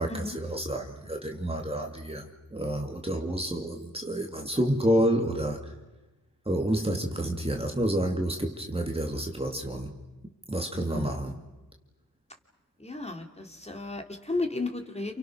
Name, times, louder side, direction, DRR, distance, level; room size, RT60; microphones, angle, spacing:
voice 1, 0.0-5.7 6.5-10.0 10.5-11.4, right 1 dB, 15° right, 3 dB, 2.5 m, -29 dB
voice 2, 10.7-11.1 12.8-15.2, left 3 dB, 15° left, 4 dB, 3.2 m, -34 dB
29.0 x 28.5 x 6.3 m, 1.1 s
cardioid pair, 80°, 38 cm